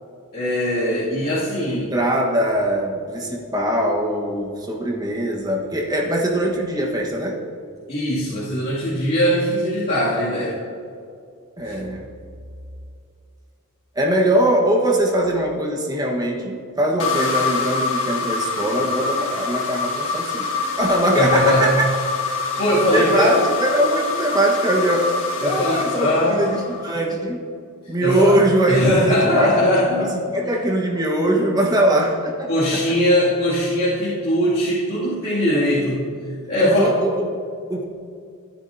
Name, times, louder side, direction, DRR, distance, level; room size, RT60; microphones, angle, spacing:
voice 1, 0.3-1.9 7.9-10.6 11.6-11.7 21.1-21.8 22.3-23.3 25.4-26.6 28.0-28.4 28.7-30.2 32.5-36.1 36.5-37.0, left 1 dB, 45° left, -11 dB, 2.5 m, -20 dB
voice 2, 1.7-7.4 11.6-12.1 13.9-21.9 22.9-25.1 25.4-27.5 27.9-32.8 35.5-35.7 36.6-37.8, right 1 dB, 15° right, -1 dB, 1.4 m, -21 dB
sound 1, 17.0-27.0, left 4 dB, 60° left, 1.6 m, -25 dB
15.5 x 9.8 x 2.8 m, 2.4 s
head